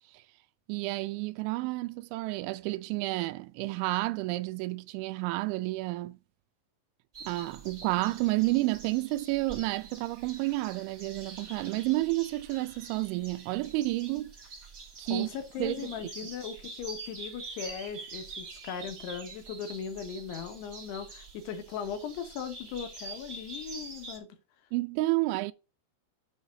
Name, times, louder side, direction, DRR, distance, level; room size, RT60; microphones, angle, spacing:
voice 1, 0.7-6.2 7.2-14.3 15.0-15.3 15.6-15.9 24.7-25.5, right 20 dB, 85° right, 2.9 m, -30 dB
sound 1, 7.1-24.2, right 3 dB, 25° right, 1.8 m, -46 dB
voice 2, 15.1-24.3, left 7 dB, 70° left, 2.8 m, -38 dB
9.0 x 3.4 x 6.6 m
omnidirectional pair, 5.4 m